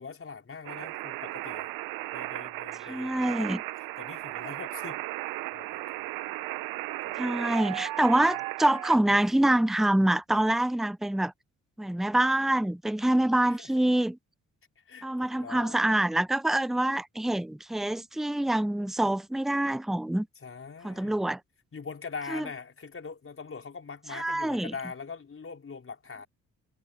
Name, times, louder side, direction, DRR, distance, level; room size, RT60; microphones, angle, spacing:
voice 1, 0.0-1.7 2.1-3.5 4.0-5.0 5.5-6.1 7.1-7.2 9.1-9.2 13.4-13.7 14.8-15.8 20.4-21.3 21.7-26.3, left 5 dB, 40° left, 4.4 m, -42 dB
sound 1, 0.6-9.0, right 18 dB, 80° right, 1.1 m, -36 dB
voice 2, 2.8-3.6 7.2-11.3 11.8-14.2 15.0-20.3 20.8-21.4 22.3-22.5 24.1-24.7, right 1 dB, ahead, 0.6 m, -26 dB
supercardioid pair, 55°, 34 cm